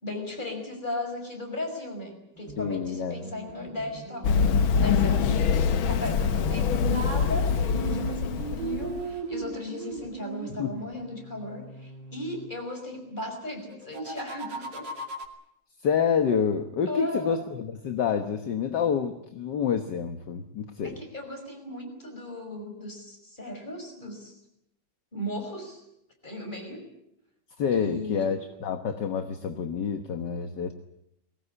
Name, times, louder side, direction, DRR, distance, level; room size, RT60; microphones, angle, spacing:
voice 1, 0.0-4.5 4.8-5.3 5.8-14.9 16.9-17.4 20.8-24.3 25.1-25.8 26.2-26.9 27.7-28.3, left 1 dB, 25° left, 4 dB, 5.8 m, -36 dB
sound 1, 2.4-6.7 7.7-12.5 13.7-15.3, right 4 dB, 60° right, 3.2 m, -39 dB
voice 2, 2.6-3.2 10.6-10.7 15.8-21.0 27.6-30.7, left 7 dB, 60° left, 7 dB, 1.8 m, -28 dB
Run, 4.2-9.0, left 6 dB, 85° left, 2.0 m, -24 dB
21.5 x 18.0 x 9.9 m, 0.80 s
omnidirectional pair, 2.1 m